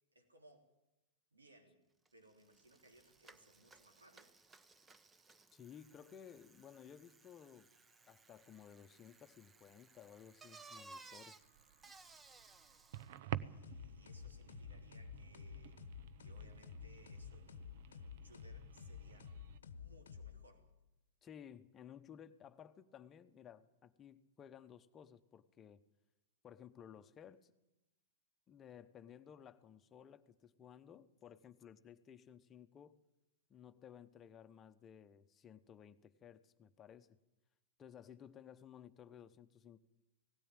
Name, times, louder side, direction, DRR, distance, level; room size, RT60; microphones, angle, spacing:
voice 1, 0.1-0.7 1.3-1.8 2.1-4.3 13.1-15.9 16.2-19.4 19.7-20.7, right 1 dB, 85° right, 3 dB, 3.7 m, -65 dB
Bicycle, 2.1-2.2 2.4-13.2, right 3 dB, 15° right, 1.1 m, -61 dB
voice 2, 5.5-7.7 8.1-11.5 21.2-25.8 26.4-27.5 28.5-33.0 33.5-37.2 37.8-39.8, left 8 dB, 25° left, 11 dB, 1.0 m, -57 dB
sound 1, 11.4-19.6, right 12 dB, 55° right, 0.8 m, -50 dB
sound 2, 13.6-20.8, left 7 dB, 70° left, 1.0 m, -52 dB
18.0 x 17.0 x 9.0 m, 0.96 s
figure-of-eight pair, 100°, 0 cm